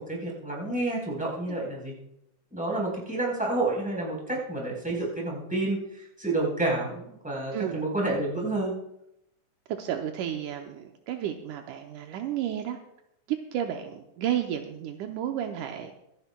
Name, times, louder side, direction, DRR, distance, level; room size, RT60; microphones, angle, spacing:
voice 1, 0.1-1.9 2.5-8.7, right 2 dB, ahead, -4 dB, 3.7 m, -29 dB
voice 2, 9.8-12.8 13.3-15.9, right 10 dB, 80° right, 4 dB, 2.1 m, -32 dB
24.5 x 10.0 x 2.2 m, 0.81 s
omnidirectional pair, 3.8 m